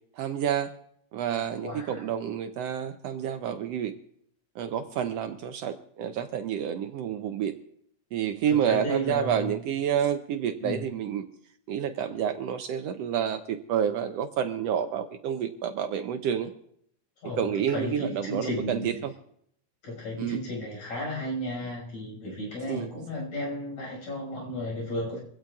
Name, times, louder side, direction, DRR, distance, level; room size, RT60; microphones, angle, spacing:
voice 1, 0.2-0.7 1.1-3.9 4.5-7.5 8.1-11.2 11.7-16.5 17.4-19.1 20.2-20.4 22.7-22.9, right 9 dB, 75° right, 7 dB, 1.6 m, -29 dB
voice 2, 1.6-2.0 8.5-9.5 10.6-10.8 17.2-18.9 19.8-25.2, left 1 dB, 80° left, -3 dB, 6.9 m, -34 dB
24.5 x 16.5 x 2.4 m, 0.71 s
omnidirectional pair, 3.3 m